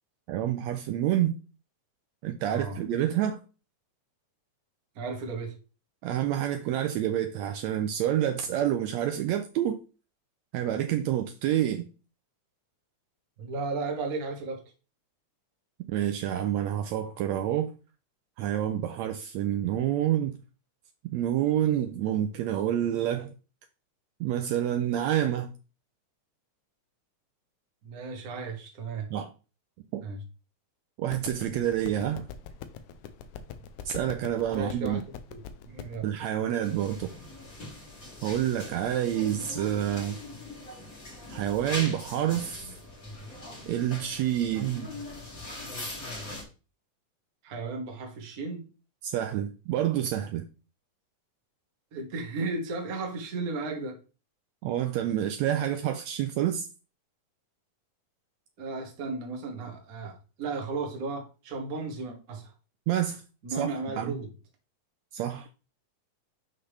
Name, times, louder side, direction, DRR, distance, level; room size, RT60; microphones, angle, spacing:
voice 1, 0.3-1.4 2.2-3.4 6.0-9.8 10.5-11.9 15.9-17.7 18.4-20.4 21.1-23.3 24.2-25.5 29.1-29.3 29.9-30.0 31.0-32.3 33.9-35.0 36.0-37.1 38.2-40.2 41.3-42.8 43.7-44.9 49.0-50.4 54.6-56.7 62.9-63.2 63.6-63.7 64.0-64.2 65.1-65.5, right 11 dB, 80° right, 1.7 m, -28 dB
voice 2, 2.5-2.8 4.9-5.6 13.4-14.6 27.8-29.1 30.0-30.2 34.5-35.0 35.3-36.1 47.4-48.6 51.9-54.0 58.6-62.5 63.4-64.3, right 3 dB, 40° right, 1.4 m, -34 dB
sound 1, 31.1-36.1, left 8 dB, 85° left, 2.2 m, -43 dB
sound 2, 36.6-46.4, left 2 dB, 30° left, 2.5 m, -41 dB
6.6 x 5.9 x 3.3 m
omnidirectional pair, 3.4 m